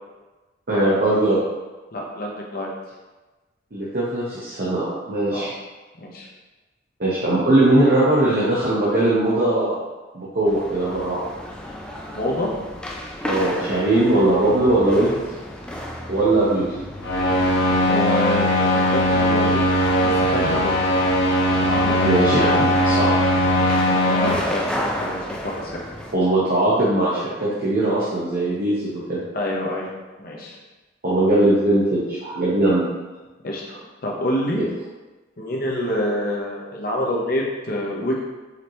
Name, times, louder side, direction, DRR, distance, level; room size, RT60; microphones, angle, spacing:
voice 1, 0.7-1.4 3.7-5.5 7.0-9.8 10.1-11.2 13.2-15.2 16.1-16.7 22.0-23.2 26.1-29.2 31.0-32.9, right 1 dB, 50° right, -9 dB, 0.9 m, -20 dB
voice 2, 1.9-2.7 5.3-5.5 6.0-6.3 12.1-12.5 17.8-19.7 20.0-20.7 21.5-22.2 23.5-25.8 29.3-29.9 30.2-30.6 33.4-34.7 35.4-38.2, left 1 dB, 50° left, -3 dB, 0.8 m, -27 dB
sound 1, 10.5-26.1, equal, 5° left, 0.3 m, -33 dB
sound 2, 17.0-24.3, left 1 dB, 80° left, 0.9 m, -19 dB
5.0 x 2.9 x 3.0 m, 1.2 s
head